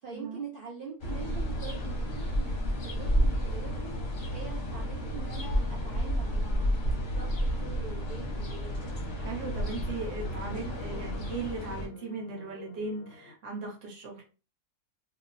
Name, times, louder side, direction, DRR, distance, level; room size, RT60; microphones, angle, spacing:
voice 1, 0.0-4.0 4.3-8.8, right 5 dB, 80° right, -3 dB, 0.4 m, -43 dB
sound 1, 1.0-11.9, equal, 50° left, 0.6 m, -31 dB
sound 2, 8.0-13.4, left 6 dB, 90° left, 1.1 m, -51 dB
voice 2, 9.1-14.2, right 3 dB, 60° right, -1 dB, 1.2 m, -38 dB
2.8 x 2.0 x 2.5 m, 0.35 s
omnidirectional pair, 1.6 m